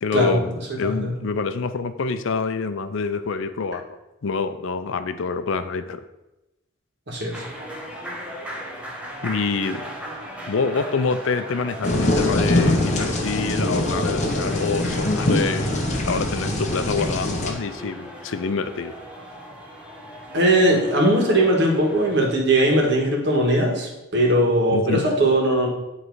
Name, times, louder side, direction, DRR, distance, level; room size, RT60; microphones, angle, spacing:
voice 1, 0.0-3.9 4.2-6.0 9.2-9.8 10.5-15.7 16.1-19.0 24.7-25.1, left 4 dB, 65° left, 11 dB, 0.5 m, -26 dB
voice 2, 0.7-1.1 7.1-7.4 20.3-25.7, right 1 dB, 55° right, 0 dB, 1.6 m, -19 dB
sound 1, 7.3-22.2, equal, 5° right, 0.9 m, -37 dB
sound 2, 11.8-17.5, left 1 dB, 35° left, 0.8 m, -23 dB
9.3 x 3.2 x 4.7 m, 0.96 s
head